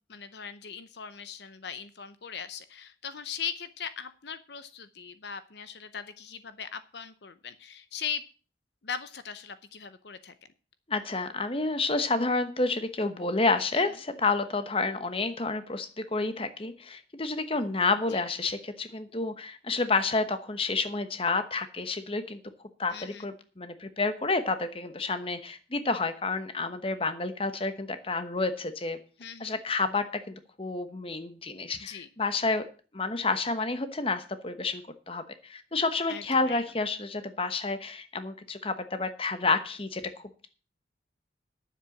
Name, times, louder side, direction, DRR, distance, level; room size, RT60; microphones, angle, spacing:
voice 1, 0.0-8.2 8.8-10.3 13.7-13.8 18.1-18.2 22.9-23.3 29.2-29.6 31.8-32.1 36.1-36.6, left 7 dB, 65° left, 13 dB, 0.7 m, -39 dB
voice 2, 10.9-22.4 22.8-29.0 29.4-32.6 32.9-40.0, left 3 dB, 30° left, 10 dB, 1.0 m, -29 dB
10.0 x 7.5 x 7.1 m, 0.38 s
head